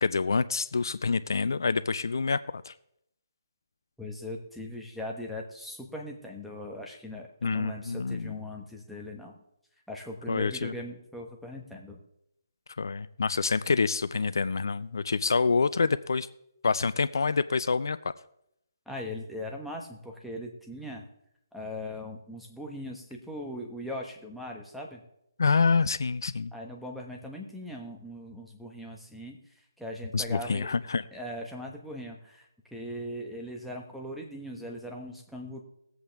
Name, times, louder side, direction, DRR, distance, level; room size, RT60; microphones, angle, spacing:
voice 1, 0.0-2.7 7.4-8.4 10.3-10.7 12.8-16.3 16.6-18.0 25.4-26.5 30.1-31.0, left 4 dB, 70° left, 14 dB, 0.5 m, -27 dB
voice 2, 4.0-9.4 9.9-12.0 18.9-21.0 21.5-25.0 26.5-29.4 29.8-30.7 31.1-35.6, left 1 dB, ahead, -2 dB, 1.3 m, -40 dB
20.0 x 8.0 x 3.5 m, 0.79 s
figure-of-eight pair, 150°, 2 cm